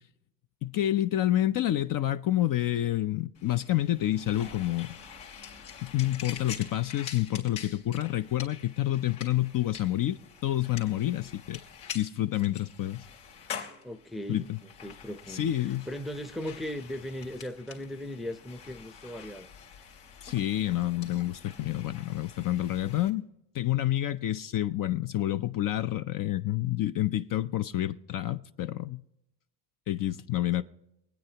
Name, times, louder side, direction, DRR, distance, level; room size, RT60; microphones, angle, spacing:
voice 1, 0.6-4.9 5.8-11.6 11.9-13.1 14.3-14.6 15.3-15.9 20.2-23.3 23.5-29.0 29.9-30.6, left 14 dB, 45° left, 0.5 m, -28 dB
sound 1, 3.3-23.1, left 7 dB, 80° left, 2.7 m, -46 dB
voice 2, 13.8-19.5 30.4-30.6, left 1 dB, ahead, 0.6 m, -38 dB
24.5 x 9.1 x 2.9 m
supercardioid pair, 100°, 47 cm